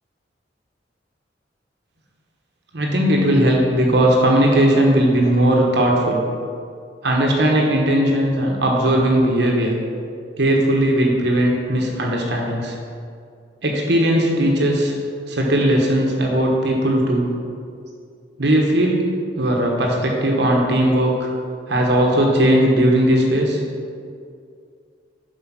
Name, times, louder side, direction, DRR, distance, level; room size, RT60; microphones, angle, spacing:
voice 1, 2.7-6.2 7.0-9.7 10.4-12.7 13.6-14.9 15.3-17.3 18.4-19.0 19.4-21.3 21.7-23.6, right 1 dB, 65° right, 0 dB, 1.2 m, -18 dB
8.0 x 4.9 x 6.2 m, 2.3 s
head